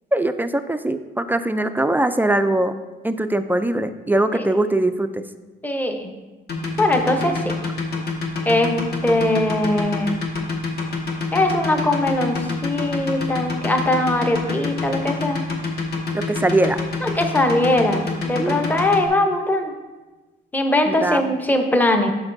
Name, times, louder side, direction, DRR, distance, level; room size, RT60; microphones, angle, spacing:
voice 1, 0.1-2.8 3.0-5.2 16.1-16.8 18.4-18.6 20.9-21.3, right 1 dB, 10° right, 10 dB, 0.3 m, -21 dB
voice 2, 5.6-6.1 6.8-7.4 8.4-10.2 11.3-15.4 17.0-19.7 20.5-22.1, left 1 dB, 10° left, 5 dB, 0.7 m, -21 dB
sound 1, 6.5-19.1, left 4 dB, 55° left, 1.3 m, -26 dB
11.5 x 4.5 x 2.6 m, 1.2 s
cardioid pair, 90°, 20 cm